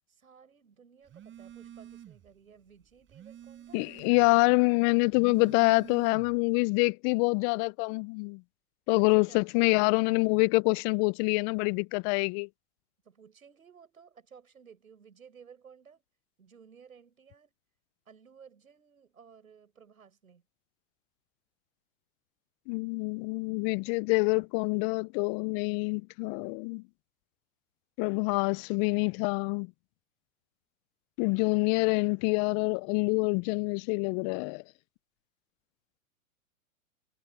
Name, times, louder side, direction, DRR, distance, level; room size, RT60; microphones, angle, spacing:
voice 1, 0.1-4.0 9.0-9.9 13.0-16.0 16.4-17.5 18.1-20.4, right 6 dB, 90° right, 7.7 m, -56 dB
Telephone, 1.1-2.3 2.7-4.4 5.0-6.5, right 10 dB, 30° right, 6.8 m, -48 dB
voice 2, 3.7-8.4 8.9-12.5 22.7-26.8 28.0-29.7 31.2-34.6, left 32 dB, 30° left, 0.4 m, -26 dB
hypercardioid pair, 110°, 41 cm